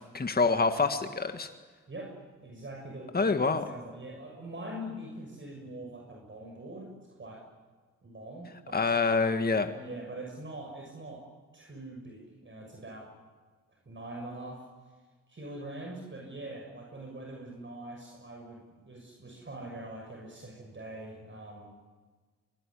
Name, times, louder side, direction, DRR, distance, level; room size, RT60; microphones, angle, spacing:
voice 1, 0.0-1.5 3.1-3.6 8.7-9.7, left 4 dB, 30° left, 7 dB, 1.9 m, -26 dB
voice 2, 2.4-7.4 8.0-9.3 9.7-11.3 11.5-13.1 13.8-14.7 15.3-21.9, right 1 dB, 40° right, 1 dB, 6.5 m, -43 dB
23.5 x 20.0 x 10.0 m, 1.4 s
supercardioid pair, 50°, 31 cm